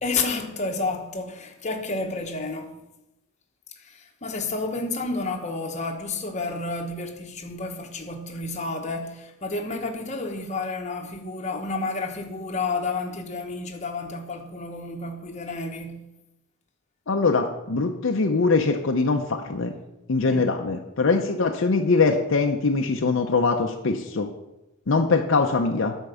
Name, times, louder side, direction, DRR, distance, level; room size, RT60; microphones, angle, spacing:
voice 1, 0.0-2.8 3.8-16.0 20.3-20.4, left 3 dB, 35° left, 1.0 m, -30 dB
voice 2, 17.1-19.7 20.1-24.3 24.9-26.0, left 4 dB, 60° left, 0.6 m, -22 dB
9.8 x 4.5 x 6.9 m
head